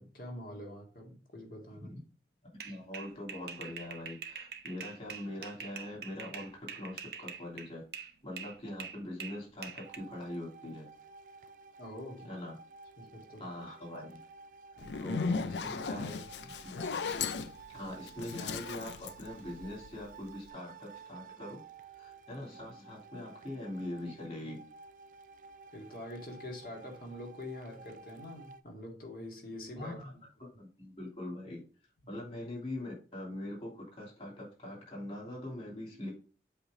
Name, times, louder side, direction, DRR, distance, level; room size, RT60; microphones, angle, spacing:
voice 1, 0.0-1.9 11.8-12.4 13.0-13.5 14.8-14.9 15.6-16.1 16.8-16.9 25.7-30.0, left 1 dB, 55° left, 2.0 m, -45 dB
voice 2, 2.6-10.9 12.2-12.5 13.4-14.2 14.9-16.2 16.6-16.7 17.7-21.6 21.9-24.6 29.8-30.1 30.4-31.6 32.1-36.1, left 1 dB, 35° left, 2.9 m, -42 dB
sound 1, 2.6-8.1 8.4-10.0, right 6 dB, 65° right, 0.8 m, -44 dB
sound 2, 9.8-28.6, right 5 dB, 45° right, 0.4 m, -53 dB
Zipper (clothing), 14.8-20.1, left 5 dB, 85° left, 0.5 m, -36 dB
7.8 x 3.2 x 5.0 m
head